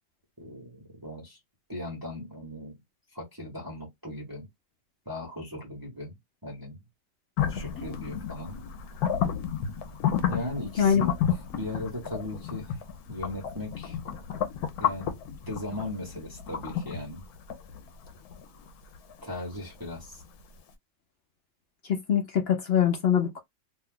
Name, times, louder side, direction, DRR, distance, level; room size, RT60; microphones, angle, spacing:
voice 1, 0.4-1.4 1.7-2.8 3.1-4.5 5.0-6.1 6.4-6.8 7.5-8.6 10.3-12.8 13.1-14.0 14.8-15.2 15.5-17.2 19.2-20.2, left 1 dB, 15° right, 1.0 m, -38 dB
sound 1, 7.4-20.2, left 8 dB, 85° left, 1.1 m, -32 dB
voice 2, 21.8-23.4, left 8 dB, 60° left, 0.7 m, -23 dB
2.7 x 2.3 x 3.6 m
omnidirectional pair, 1.6 m